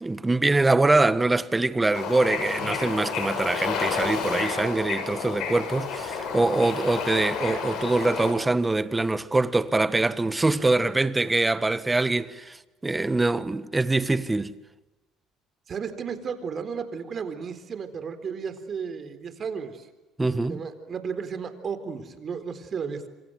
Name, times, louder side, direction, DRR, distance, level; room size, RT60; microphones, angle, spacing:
voice 1, 0.0-14.5 20.2-20.6, right 2 dB, 15° right, 1.4 m, -24 dB
Bird / Ocean, 1.9-8.3, left 5 dB, 65° left, 7.6 m, -30 dB
voice 2, 15.7-19.9 20.5-23.1, right 6 dB, 40° right, 4.0 m, -33 dB
26.5 x 26.5 x 7.8 m
supercardioid pair, 85°, 0 cm